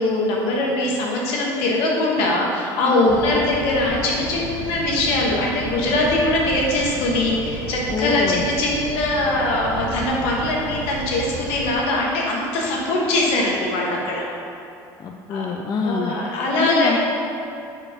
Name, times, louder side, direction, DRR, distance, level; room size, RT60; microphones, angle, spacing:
voice 1, 0.0-14.3 15.3-15.5 15.8-17.0, left 2 dB, 75° left, -3 dB, 1.3 m, -22 dB
voice 2, 2.9-3.2 7.9-8.5 15.0-16.2 16.6-17.0, left 5 dB, 40° left, 2 dB, 0.4 m, -24 dB
sound 1, 3.1-11.7, right 4 dB, 75° right, 0.6 m, -33 dB
4.7 x 4.7 x 4.9 m, 2.6 s
hypercardioid pair, 75°, 10 cm